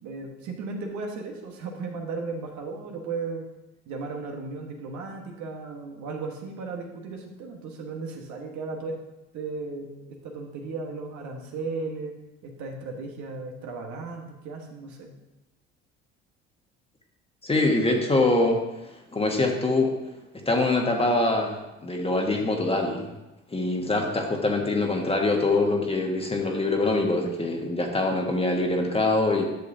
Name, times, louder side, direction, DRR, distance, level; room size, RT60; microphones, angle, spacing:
voice 1, 0.0-3.5 3.9-9.0 9.3-15.1, right 3 dB, 65° right, 2 dB, 1.5 m, -35 dB
voice 2, 17.4-18.6 19.1-19.9 20.4-23.1 23.5-29.5, left 2 dB, 20° left, 1 dB, 1.5 m, -24 dB
10.0 x 6.5 x 2.8 m, 0.98 s
hypercardioid pair, 70°, 31 cm